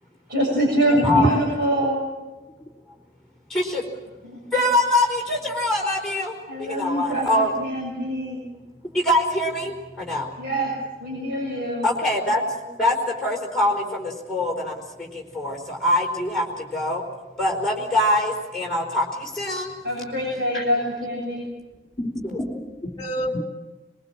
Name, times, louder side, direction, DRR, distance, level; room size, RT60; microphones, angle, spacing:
voice 1, 0.3-2.0 4.2-4.4 6.5-8.4 10.4-10.7 11.0-11.9 19.8-21.5, equal, 60° right, -4 dB, 6.9 m, -24 dB
voice 2, 0.9-1.4 22.0-23.4, equal, 25° left, 2 dB, 3.7 m, -27 dB
voice 3, 3.5-3.8 4.5-6.3 6.7-7.5 9.0-9.7 10.0-10.3 11.8-12.4 12.8-12.9 13.2-14.7 15.3-16.4 16.7-17.0 17.4-19.0 19.4-19.7 20.5-20.6, left 1 dB, ahead, -2 dB, 4.6 m, -23 dB
23.0 x 22.5 x 7.5 m, 1.1 s
head